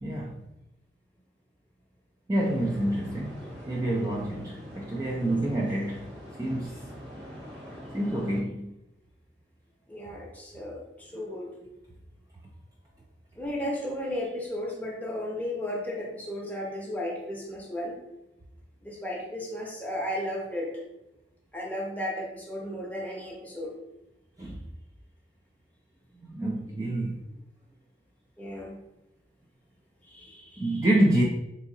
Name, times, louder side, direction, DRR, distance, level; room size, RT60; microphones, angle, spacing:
voice 1, 0.0-0.4 2.3-3.4 3.7-6.8 7.9-8.7 24.4-24.6 26.2-27.2 30.6-31.2, right 1 dB, 20° right, -3 dB, 0.3 m, -27 dB
sound 1, 2.4-8.4, equal, 80° right, 1.1 m, -43 dB
voice 2, 9.9-11.5 13.4-18.0 18.8-20.8 21.5-23.7 28.4-28.8 30.0-30.9, left 1 dB, 10° left, -2 dB, 0.7 m, -34 dB
3.6 x 2.8 x 2.6 m, 0.91 s
head